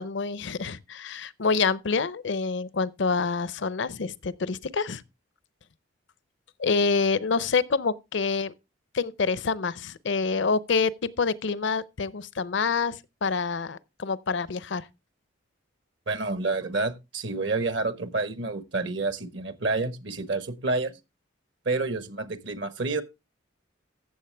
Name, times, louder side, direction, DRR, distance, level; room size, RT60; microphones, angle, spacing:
voice 1, 0.0-5.0 6.6-8.5 8.9-14.9, left 4 dB, 60° left, 0.6 m, -27 dB
voice 2, 16.1-20.9 21.6-23.0, right 3 dB, 60° right, 1.2 m, -29 dB
15.0 x 7.3 x 3.3 m
head